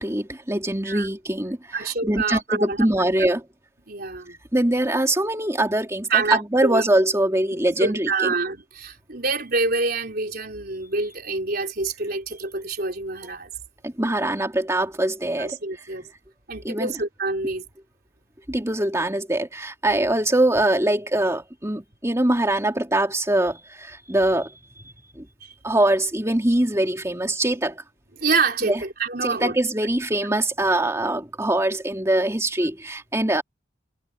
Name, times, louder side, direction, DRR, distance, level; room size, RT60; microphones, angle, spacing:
voice 1, 0.0-3.4 4.5-8.1 13.8-15.6 16.6-16.9 17.4-17.5 18.5-24.5 24.8-25.3 25.6-27.8 28.6-28.8 29.2-33.4, right 1 dB, 15° right, 2.7 m, -23 dB
voice 2, 0.7-1.1 1.7-3.1 3.9-4.4 6.1-6.9 7.7-13.5 15.2-16.0 16.5-17.6 20.0-20.1 25.4-25.5 28.2-29.6, right 3 dB, 50° right, 4.1 m, -26 dB
head